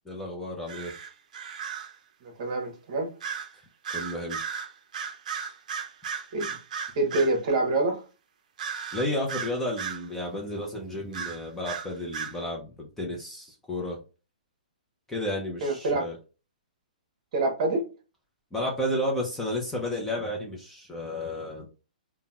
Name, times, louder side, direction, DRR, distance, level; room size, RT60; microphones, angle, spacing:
voice 1, 0.1-0.9 3.9-4.4 8.9-14.0 15.1-16.2 18.5-21.7, left 1 dB, 5° left, 0.5 m, -32 dB
sound 1, 0.7-1.9 3.2-3.5 3.8-7.4 8.6-10.1 11.1-12.4, right 7 dB, 60° right, 0.5 m, -35 dB
voice 2, 2.2-3.1 6.3-6.6 7.0-8.0 15.6-16.0 17.3-17.8, right 2 dB, 45° right, 1.0 m, -26 dB
3.7 x 2.1 x 2.3 m
hypercardioid pair, 155°, 5 cm